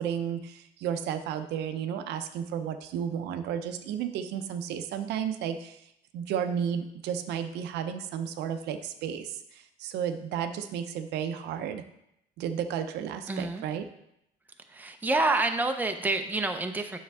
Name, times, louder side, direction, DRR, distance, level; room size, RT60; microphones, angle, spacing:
voice 1, 0.0-5.8 6.1-11.8 12.4-13.9, right 8 dB, 80° right, 8 dB, 0.6 m, -33 dB
voice 2, 13.3-13.6 14.7-17.0, right 2 dB, 10° right, 6 dB, 0.6 m, -28 dB
7.3 x 6.4 x 3.5 m, 0.79 s
cardioid pair, 110°, 17 cm